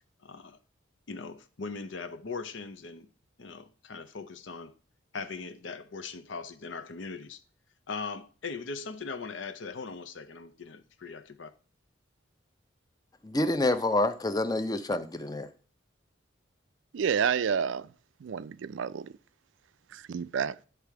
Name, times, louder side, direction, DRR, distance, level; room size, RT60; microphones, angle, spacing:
voice 1, 0.2-0.6 1.1-3.1 3.4-4.7 5.1-7.4 7.9-11.5, left 4 dB, 70° left, 0.7 m, -40 dB
voice 2, 13.2-15.5, left 2 dB, 20° left, 0.5 m, -27 dB
voice 3, 16.9-17.9 18.2-19.1 19.9-20.6, right 7 dB, 70° right, 0.4 m, -29 dB
10.0 x 3.4 x 4.7 m
head